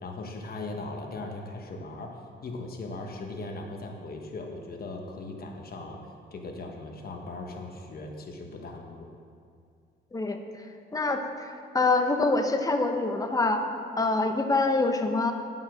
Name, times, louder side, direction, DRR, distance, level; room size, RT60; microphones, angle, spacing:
voice 1, 0.0-9.1, left 2 dB, 50° left, 2 dB, 1.4 m, -39 dB
voice 2, 10.9-13.6 14.0-15.3, left 3 dB, 15° left, 5 dB, 0.9 m, -25 dB
11.5 x 5.6 x 6.3 m, 2.3 s
cardioid pair, 90°, 20 cm